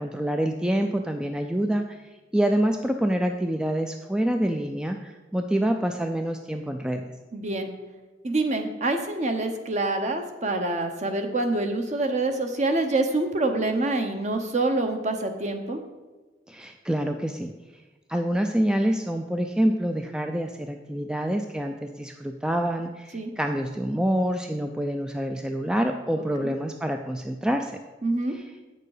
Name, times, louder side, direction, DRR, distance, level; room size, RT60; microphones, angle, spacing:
voice 1, 0.0-2.0 2.3-7.0 16.5-17.5 18.1-27.8 28.3-28.4, right 1 dB, 5° right, 5 dB, 0.3 m, -26 dB
voice 2, 7.3-7.7 8.2-15.8 23.1-23.3 26.4-26.5 28.0-28.4, right 2 dB, 40° right, 5 dB, 0.9 m, -26 dB
8.5 x 6.7 x 4.9 m, 1.2 s
head